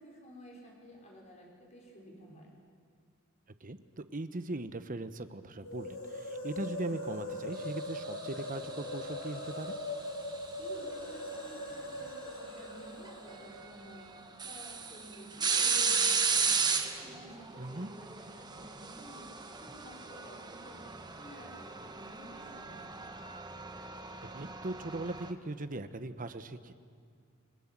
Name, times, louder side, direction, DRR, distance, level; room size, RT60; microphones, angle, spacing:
voice 1, 0.0-2.5 10.6-14.1 14.4-16.7 17.0-20.9 21.2-23.0, equal, 35° left, -1 dB, 4.9 m, -52 dB
voice 2, 3.6-9.8 17.6-17.9 24.3-26.7, right 2 dB, 40° right, 11 dB, 1.0 m, -39 dB
sound 1, 5.6-14.5 14.7-14.8 15.5-16.1, left 1 dB, 85° left, 7.2 m, -41 dB
sound 2, 8.1-9.5 11.3-11.5 13.1-13.2 13.6-13.7 14.1-25.3, right 5 dB, 20° right, 1.2 m, -34 dB
29.5 x 21.5 x 7.5 m, 2.1 s
head